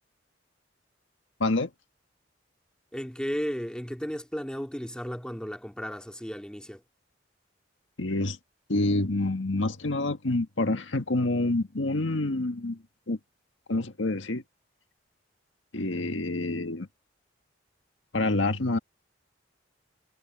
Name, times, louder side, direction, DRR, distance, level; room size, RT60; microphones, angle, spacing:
voice 1, 1.4-1.7 8.0-8.4 8.7-12.8 13.1-13.2 13.7-14.4 15.7-16.9 18.1-18.8, left 2 dB, 90° left, 1.7 m, -27 dB
voice 2, 2.9-6.8, equal, 5° left, 2.1 m, -34 dB
head